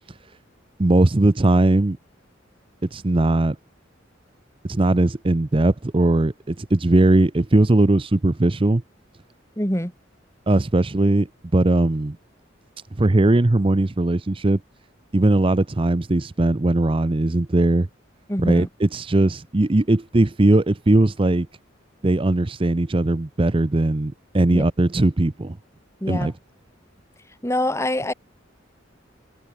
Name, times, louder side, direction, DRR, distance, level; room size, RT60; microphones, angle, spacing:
voice 1, 0.8-2.0 2.9-3.6 4.6-8.8 10.5-11.3 11.5-12.2 13.0-14.6 15.1-17.9 18.4-21.5 22.0-25.6 26.1-26.3, right 2 dB, 30° right, 0.6 m, -19 dB
voice 2, 9.6-9.9 18.3-18.7 24.5-24.6 26.0-26.3 27.4-28.1, left 1 dB, 15° left, 7.9 m, -24 dB
head